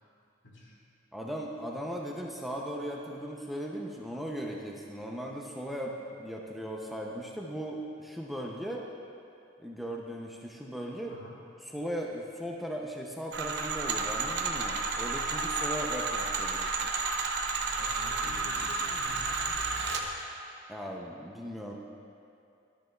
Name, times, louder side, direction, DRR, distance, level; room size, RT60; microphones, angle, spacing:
voice 1, 0.4-0.7 11.1-11.3 17.8-19.8, left 1 dB, 70° left, -3 dB, 1.7 m, -47 dB
voice 2, 1.1-8.9 9.6-11.2 11.6-16.9 20.7-21.7, equal, ahead, -1 dB, 0.5 m, -38 dB
sound 1, 13.3-20.0, right 4 dB, 60° right, 0.7 m, -31 dB
12.0 x 9.3 x 2.3 m, 2.5 s
head